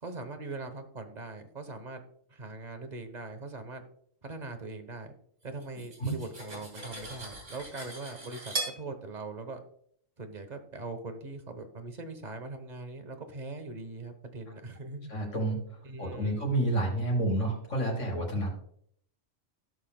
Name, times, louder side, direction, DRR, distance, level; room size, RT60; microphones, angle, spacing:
voice 1, 0.0-2.0 2.3-3.8 4.2-5.1 5.4-9.6 10.2-15.1 15.8-16.5, right 3 dB, 35° right, 7 dB, 1.1 m, -41 dB
Cutlery silverware, 5.6-8.8, right 2 dB, 60° right, 3.2 m, -39 dB
voice 2, 15.1-15.6 16.0-18.5, right 1 dB, 65° left, -2 dB, 4.5 m, -29 dB
17.0 x 5.7 x 2.2 m, 0.66 s
omnidirectional pair, 1.4 m